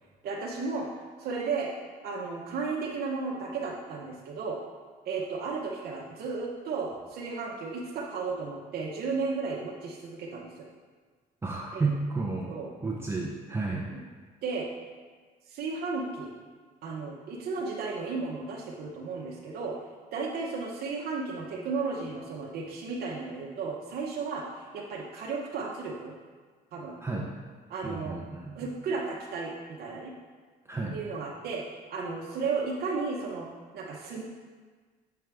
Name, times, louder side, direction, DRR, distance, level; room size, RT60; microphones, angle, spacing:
voice 1, 0.2-0.9 1.2-1.7 2.0-4.6 5.0-10.7 11.7-11.9 12.5-12.7 13.9-14.0 14.4-14.7 15.5-16.3 16.8-19.7 20.1-26.1 26.7-27.0 27.7-28.2 28.5-30.1 30.9-31.6 31.9-33.5 33.7-34.2, right 4 dB, 65° right, -2 dB, 0.8 m, -34 dB
voice 2, 11.4-12.5 12.8-13.9 27.0-27.3 27.8-28.7 30.7-31.0, right 3 dB, 15° right, -2 dB, 0.6 m, -32 dB
7.6 x 4.6 x 3.4 m, 1.5 s
cardioid pair, 110°, 17 cm